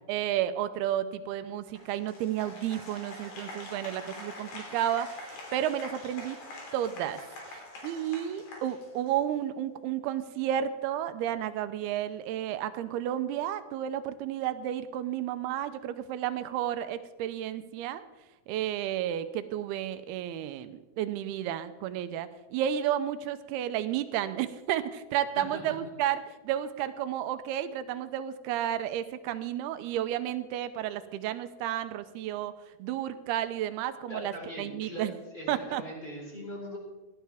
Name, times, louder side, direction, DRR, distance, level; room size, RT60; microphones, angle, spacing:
voice 1, 0.1-6.4 6.7-7.2 7.5-18.0 18.5-32.5 32.8-35.1 35.5-35.8, right 11 dB, 80° right, 11 dB, 2.6 m, -32 dB
Applause, 1.8-9.3, left 2 dB, 75° left, 4.9 m, -45 dB
voice 2, 34.1-36.8, equal, 10° left, -3 dB, 3.9 m, -41 dB
17.5 x 12.0 x 3.5 m, 1.1 s
omnidirectional pair, 4.6 m